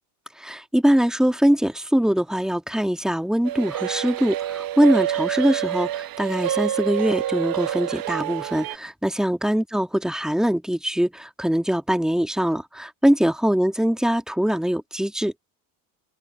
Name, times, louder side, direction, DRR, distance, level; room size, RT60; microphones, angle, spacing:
voice 1, 0.4-15.3, equal, ahead, 2.3 m, -22 dB
sound 1, 3.4-8.8, right 12 dB, 45° right, 1.0 m, -27 dB
hypercardioid pair, 80°, 48 cm